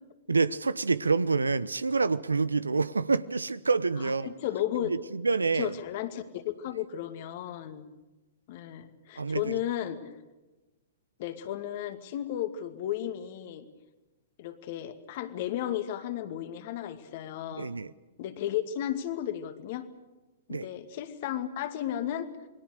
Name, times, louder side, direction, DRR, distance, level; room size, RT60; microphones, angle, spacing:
voice 1, 0.3-4.3 4.8-5.7 9.2-9.6 17.6-17.9 20.5-20.7, right 4 dB, 80° right, 0.9 m, -27 dB
voice 2, 4.0-4.9 5.5-7.8 8.5-10.0 11.2-13.7 14.4-17.7 18.2-19.9 20.5-22.3, left 11 dB, 50° left, 2.3 m, -34 dB
28.5 x 21.5 x 6.7 m
figure-of-eight pair, 110°, 0 cm